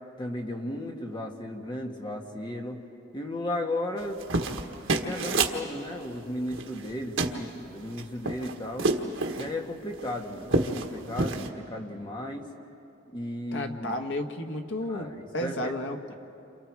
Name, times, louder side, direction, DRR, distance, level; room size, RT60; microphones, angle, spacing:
voice 1, 0.2-2.8 3.1-4.2 5.0-8.9 9.4-12.4 13.1-14.0 14.9-15.8 16.1-16.2, left 1 dB, 25° left, 2 dB, 1.8 m, -35 dB
sound 1, 4.0-5.6 6.5-6.9 7.2-7.4 7.9-9.5 10.0-10.1 10.4-10.9 11.2-11.5, right 3 dB, 80° right, 1.5 m, -28 dB
voice 2, 13.5-16.1, left 1 dB, 70° left, 4 dB, 1.5 m, -33 dB
29.5 x 27.0 x 4.8 m, 2.8 s
head